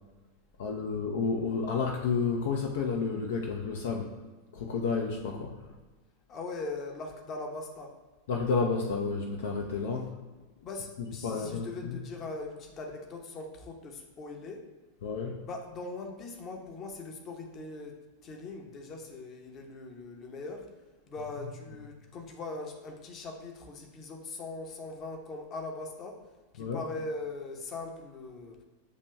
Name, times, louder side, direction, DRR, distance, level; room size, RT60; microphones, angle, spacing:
voice 1, 0.6-4.1 4.5-5.5 8.3-10.2 11.2-12.0 15.0-15.4 26.6-26.8, left 5 dB, 55° left, 1 dB, 0.4 m, -31 dB
voice 2, 6.3-7.9 10.6-14.7 15.4-20.7 21.1-26.2 26.5-28.6, left 3 dB, 30° left, 2 dB, 0.7 m, -40 dB
8.1 x 2.9 x 2.2 m, 1.3 s
figure-of-eight pair, 90°, 0 cm